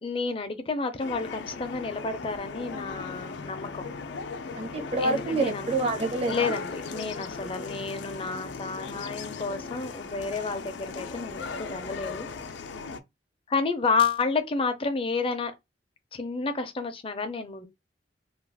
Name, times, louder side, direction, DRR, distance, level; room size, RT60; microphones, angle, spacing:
voice 1, 0.0-3.9 5.0-5.7 6.3-12.3 13.5-15.5 16.1-17.7, left 4 dB, 30° left, 0.5 m, -30 dB
sound 1, 1.0-13.0, left 4 dB, 90° left, 0.4 m, -37 dB
voice 2, 4.5-6.5, right 2 dB, 35° right, 0.7 m, -27 dB
2.4 x 2.3 x 3.4 m
head